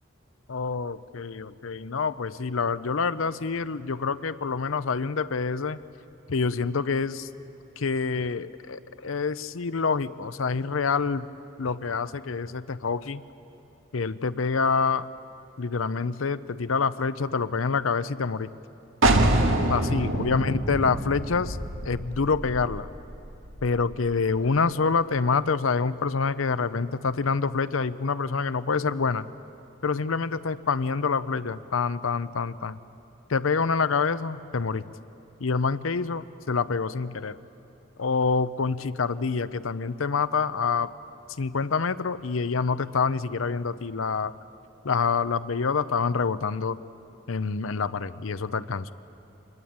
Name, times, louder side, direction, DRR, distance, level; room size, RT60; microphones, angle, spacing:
voice 1, 0.5-5.8 6.3-7.3 7.8-11.3 11.6-13.2 13.9-15.1 15.6-18.5 19.7-21.6 21.8-22.9 23.6-29.3 29.8-32.8 33.3-34.8 35.4-37.4 38.0-40.9 41.4-44.3 44.8-46.8 47.3-48.9, left 5 dB, 90° left, 13 dB, 0.7 m, -26 dB
sound 1, 19.0-24.6, right 1 dB, 80° right, 2.0 m, -26 dB
25.0 x 20.5 x 8.8 m, 2.8 s
head